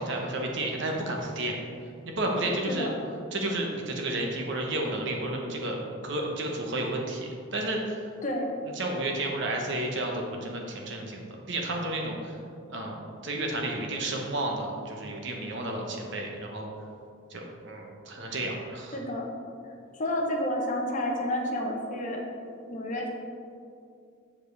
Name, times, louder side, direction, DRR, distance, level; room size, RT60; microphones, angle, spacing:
voice 1, 0.0-1.6 2.0-2.9 3.3-5.8 6.0-8.1 8.7-12.4 12.7-13.0 13.2-16.7 17.3-19.0, right 1 dB, 55° right, 0 dB, 1.0 m, -31 dB
voice 2, 18.9-19.3 20.0-22.2 22.7-23.1, left 1 dB, 35° left, 0 dB, 0.9 m, -30 dB
7.2 x 7.1 x 3.4 m, 2.4 s
head